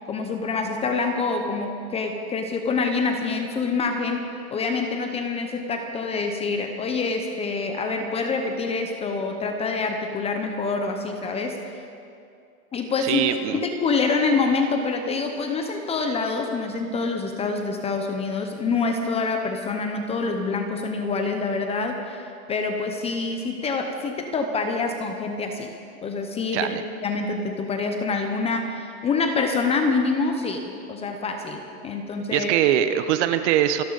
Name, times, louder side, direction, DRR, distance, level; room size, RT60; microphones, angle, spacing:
voice 1, 0.1-11.6 12.7-13.2 13.5-25.7 26.0-26.7 27.0-32.5, left 4 dB, 15° left, 5 dB, 0.7 m, -26 dB
voice 2, 13.0-13.6 26.5-26.8 32.3-33.8, right 11 dB, 45° right, 11 dB, 1.0 m, -22 dB
28.0 x 12.0 x 4.0 m, 2.5 s
supercardioid pair, 150°, 47 cm